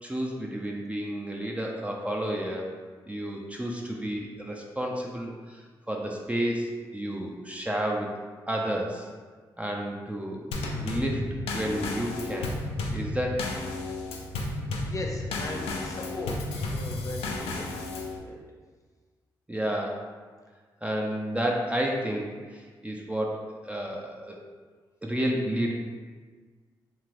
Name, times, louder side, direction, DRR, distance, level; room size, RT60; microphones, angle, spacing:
voice 1, 0.0-2.7 3.1-8.2 8.5-9.1 9.6-10.5 10.8-11.3 11.5-12.5 12.9-13.5 19.5-20.0 20.8-24.4 25.0-25.7, right 1 dB, 15° right, -1 dB, 0.4 m, -31 dB
Drum kit / Snare drum / Bass drum, 10.5-18.2, left 2 dB, 80° left, 0.4 m, -33 dB
voice 2, 14.8-17.7 18.2-18.4, left 1 dB, 35° left, 0 dB, 0.6 m, -38 dB
3.0 x 2.9 x 2.5 m, 1.5 s
hypercardioid pair, 40°, 10 cm